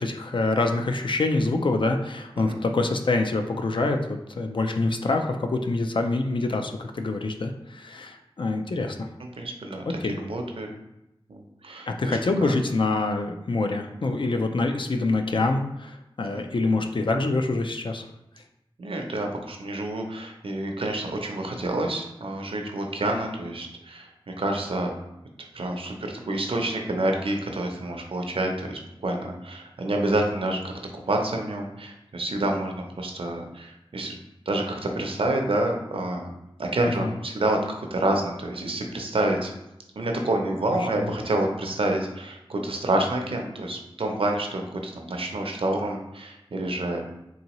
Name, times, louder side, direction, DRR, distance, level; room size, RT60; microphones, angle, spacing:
voice 1, 0.0-9.1 10.0-10.2 11.9-18.1 36.8-37.1 41.0-41.1, left 2 dB, 60° left, 5 dB, 0.4 m, -26 dB
voice 2, 9.4-9.8 10.2-10.7 11.3-12.5 16.3-16.4 18.8-24.1 24.4-24.9 25.5-30.7 31.1-34.2 34.5-36.3 36.6-39.5 40.0-47.1, right 1 dB, 75° right, 2 dB, 0.6 m, -28 dB
3.9 x 2.7 x 2.9 m, 0.87 s
wide cardioid pair, 70°, 10 cm